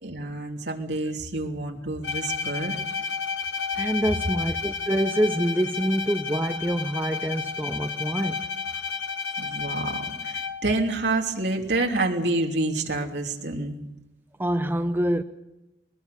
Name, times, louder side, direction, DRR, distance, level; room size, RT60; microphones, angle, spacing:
voice 1, 0.0-2.8 9.4-13.7, right 2 dB, 70° right, 3.0 m, -28 dB
Bowed string instrument, 2.0-10.8, left 5 dB, 80° left, 1.2 m, -31 dB
voice 2, 3.7-8.8 14.4-15.2, equal, 10° right, 0.7 m, -26 dB
22.0 x 21.0 x 6.8 m
head